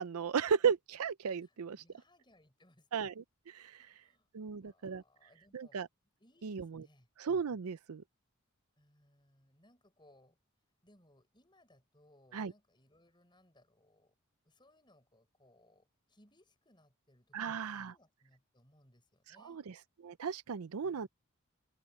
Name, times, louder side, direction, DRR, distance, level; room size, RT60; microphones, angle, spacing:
voice 1, 0.0-1.8 2.9-3.8 4.3-5.0 5.5-5.9 6.4-6.8 7.2-8.0 12.3-12.5 17.3-17.9 19.4-19.7 20.0-21.1, right 6 dB, 80° right, 0.5 m, -35 dB
voice 2, 1.4-3.0 3.8-5.8 6.2-7.1 8.8-10.4 10.8-14.1 14.4-19.6 20.8-21.1, left 1 dB, 20° left, 6.0 m, -67 dB
head